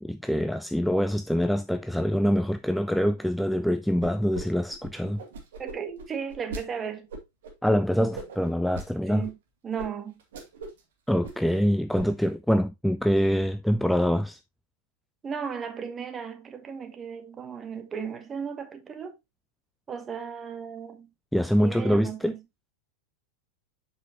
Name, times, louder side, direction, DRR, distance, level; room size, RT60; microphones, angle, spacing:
voice 1, 0.0-5.2 7.6-9.2 11.1-14.4 21.3-22.4, equal, ahead, 0.3 m, -25 dB
sound 1, 4.0-4.4 4.7-6.6 7.1-7.5 8.1-8.9 9.2-9.3 9.8-9.9 10.2-10.8 11.1-11.6 11.9-12.3, right 3 dB, 60° right, 2.0 m, -40 dB
voice 2, 5.6-7.1 9.1-9.4 9.6-10.2 15.2-19.1 19.9-21.1 21.6-22.4, right 7 dB, 20° right, 1.2 m, -35 dB
7.6 x 5.7 x 2.9 m
figure-of-eight pair, 90°, 0 cm